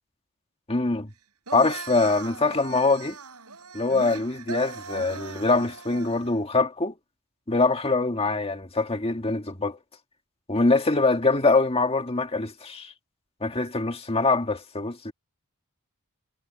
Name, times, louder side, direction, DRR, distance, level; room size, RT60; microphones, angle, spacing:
voice 1, 0.7-1.1 1.5-3.2 3.7-6.9 7.5-9.8 10.5-12.9 13.4-15.1, left 3 dB, 25° left, 1.8 m, -24 dB
sound 1, 1.5-6.4, right 4 dB, 85° right, 7.4 m, -39 dB
head